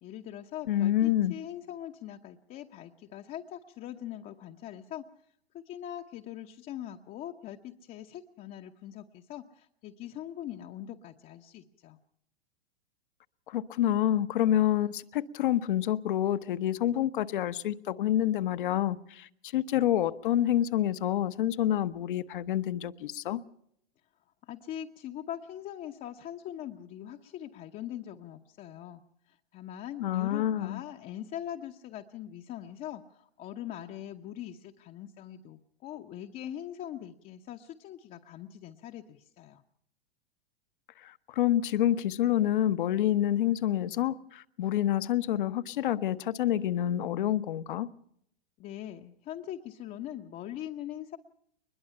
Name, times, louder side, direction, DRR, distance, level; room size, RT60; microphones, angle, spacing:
voice 1, 0.0-5.0 5.5-12.0 24.4-29.0 29.3-39.6 48.6-51.2, left 11 dB, 25° left, 1.0 m, -42 dB
voice 2, 0.7-1.4 13.5-23.4 30.0-30.8 41.0-47.9, left 12 dB, 55° left, 1.0 m, -28 dB
22.5 x 21.0 x 5.7 m
figure-of-eight pair, 100°, 31 cm